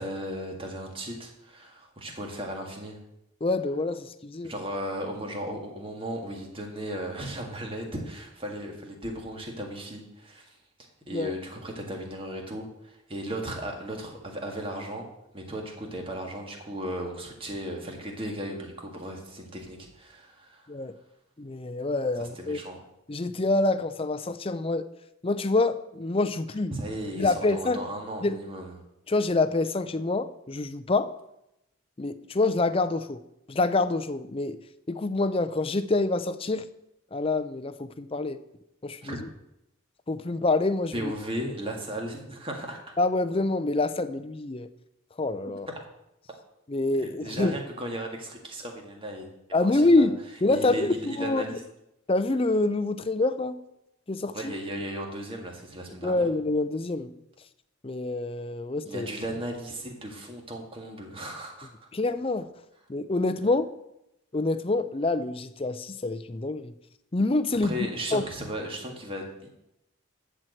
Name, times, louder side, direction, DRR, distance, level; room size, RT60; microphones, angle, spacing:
voice 1, 0.0-3.0 4.4-10.6 11.1-20.7 22.1-22.8 26.7-28.8 39.0-39.2 40.9-42.9 47.2-49.3 49.6-50.1 50.5-51.6 54.3-56.2 58.8-61.9 67.6-69.5, right 1 dB, 25° right, 2 dB, 1.8 m, -36 dB
voice 2, 3.4-4.5 11.1-11.3 20.7-20.9 21.4-22.6 23.1-24.9 25.2-26.7 27.2-27.8 28.2-28.4 29.1-31.1 32.0-33.2 33.5-34.6 34.9-36.7 37.1-38.4 38.8-39.2 40.1-41.1 43.0-44.7 45.2-45.7 46.7-47.5 49.5-51.4 52.1-53.6 54.1-54.5 56.0-57.1 57.8-59.1 61.9-62.5 62.9-63.7 64.3-66.7 67.1-67.7 68.1-68.2, left 2 dB, 25° left, 11 dB, 0.5 m, -26 dB
13.5 x 4.6 x 7.8 m, 0.86 s
head